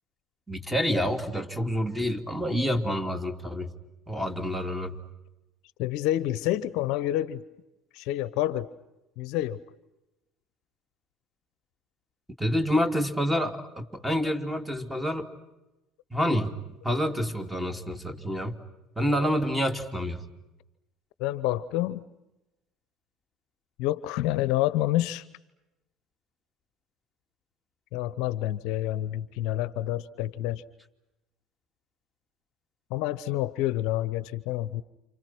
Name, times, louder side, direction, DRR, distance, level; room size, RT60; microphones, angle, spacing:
voice 1, 0.5-3.7 4.1-5.0 12.4-15.3 16.1-16.6 16.8-18.6 18.9-20.2, equal, 5° right, 6 dB, 3.1 m, -28 dB
voice 2, 5.8-7.4 7.9-8.7 9.2-9.6 21.2-22.1 23.8-25.3 27.9-30.6 32.9-34.8, left 14 dB, 65° left, 17 dB, 0.8 m, -28 dB
29.5 x 28.5 x 6.1 m, 0.98 s
hypercardioid pair, 65°, 0 cm